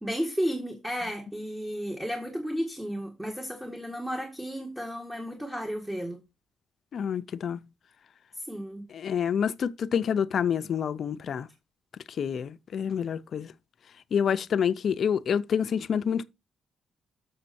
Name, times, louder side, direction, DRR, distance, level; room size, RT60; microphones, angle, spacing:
voice 1, 0.0-6.2 8.4-8.9, equal, 5° right, 1.8 m, -33 dB
voice 2, 6.9-7.6 8.9-11.5 12.2-13.5 14.1-16.2, left 7 dB, 60° left, 0.5 m, -27 dB
6.9 x 6.6 x 4.2 m
cardioid pair, 90°, 0 cm